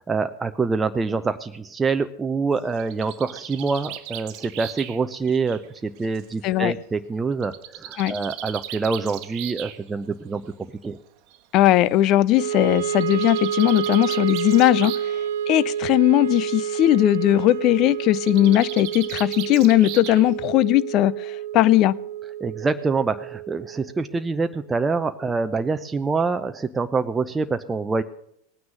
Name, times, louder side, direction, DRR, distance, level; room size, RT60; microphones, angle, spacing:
voice 1, 0.0-10.5 10.8-11.0 22.4-28.0, right 4 dB, 15° right, 8 dB, 0.7 m, -25 dB
Bird, 2.6-6.3 7.4-9.8 10.9-11.0 11.3-11.4 11.6-11.7 12.8-15.2 15.5-16.0 18.0-20.5, right 12 dB, 50° right, 1.1 m, -37 dB
voice 2, 11.5-15.0 15.5-22.0, left 15 dB, 45° left, 19 dB, 0.6 m, -18 dB
Wind instrument woodwind instrument, 12.3-24.6, right 10 dB, 70° right, 0.5 m, -29 dB
18.5 x 9.5 x 6.4 m, 0.70 s
figure-of-eight pair, 85°, 0 cm